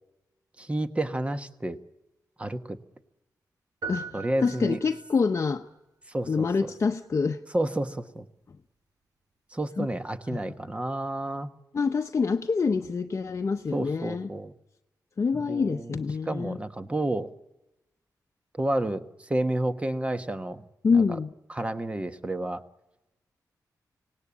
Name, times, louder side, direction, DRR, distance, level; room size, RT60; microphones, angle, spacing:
voice 1, 0.6-1.8 2.4-2.8 4.1-4.8 6.1-6.5 7.5-8.3 9.5-11.5 13.7-14.5 15.4-16.0 16.3-17.3 18.6-20.6 20.9-21.2 21.5-22.6, right 1 dB, 20° right, 1.1 m, -30 dB
sound 1, 3.8-5.3, right 4 dB, 65° right, 5.6 m, -39 dB
voice 2, 3.9-5.6 6.3-7.4 9.8-9.9 10.3-10.5 11.7-14.3 15.2-16.6 20.8-21.3, left 5 dB, 45° left, 0.8 m, -26 dB
25.5 x 18.0 x 8.6 m
wide cardioid pair, 130°, 7 cm